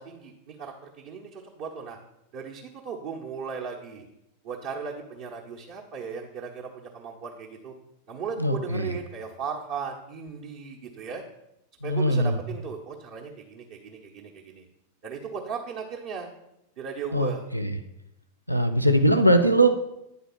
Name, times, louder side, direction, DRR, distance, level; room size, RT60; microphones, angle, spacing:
voice 1, 0.0-2.0 2.3-4.1 4.4-7.7 8.1-11.2 11.8-14.6 15.0-16.3 16.8-17.4, right 6 dB, 50° right, -3 dB, 1.0 m, -37 dB
voice 2, 8.4-8.9 11.8-12.3 17.1-17.8 18.5-19.7, right 1 dB, 90° right, 7 dB, 0.5 m, -21 dB
9.6 x 4.0 x 5.6 m, 0.85 s
figure-of-eight pair, 90°, 0 cm